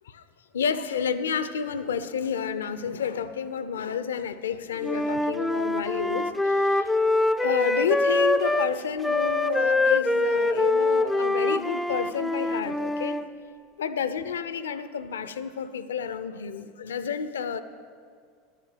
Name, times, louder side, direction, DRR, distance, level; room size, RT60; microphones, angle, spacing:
voice 1, 0.5-7.0 7.4-13.2 13.8-17.6, left 7 dB, 70° left, 13 dB, 0.5 m, -30 dB
Wind instrument woodwind instrument, 4.8-8.7 9.0-13.3, left 2 dB, 5° left, 0.4 m, -24 dB
10.5 x 7.5 x 7.9 m, 2.1 s
figure-of-eight pair, 80°, 0 cm